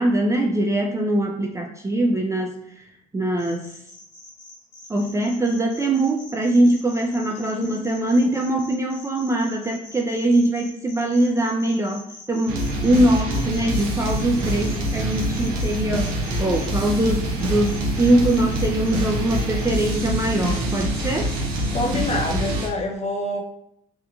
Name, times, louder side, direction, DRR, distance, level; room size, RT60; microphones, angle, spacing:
voice 1, 0.0-2.6 3.1-3.7 4.9-21.3, right 1 dB, 15° right, 1 dB, 0.3 m, -22 dB
sound 1, 3.4-16.7 17.4-19.0 19.3-21.9, left 2 dB, 75° left, 0.9 m, -44 dB
sound 2, 12.5-22.7, right 1 dB, 90° right, 0.5 m, -25 dB
voice 2, 21.7-23.4, left 2 dB, 35° left, 2 dB, 0.6 m, -26 dB
2.9 x 2.1 x 2.4 m, 0.76 s
hypercardioid pair, 60°, 20 cm